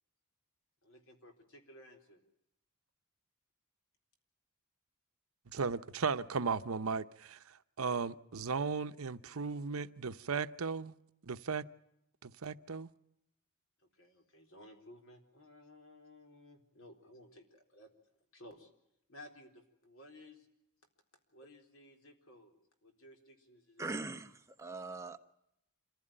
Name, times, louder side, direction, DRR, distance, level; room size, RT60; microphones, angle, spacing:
voice 1, 0.8-2.2 13.9-18.7 19.1-20.5 21.3-22.6 22.8-24.0, left 1 dB, 65° left, 4.0 m, -57 dB
voice 2, 5.5-7.4 7.8-10.9 11.2-11.6 12.2-12.9, right 5 dB, 80° right, 0.8 m, -36 dB
voice 3, 23.8-25.2, right 3 dB, 15° right, 1.2 m, -41 dB
27.0 x 15.5 x 8.9 m
head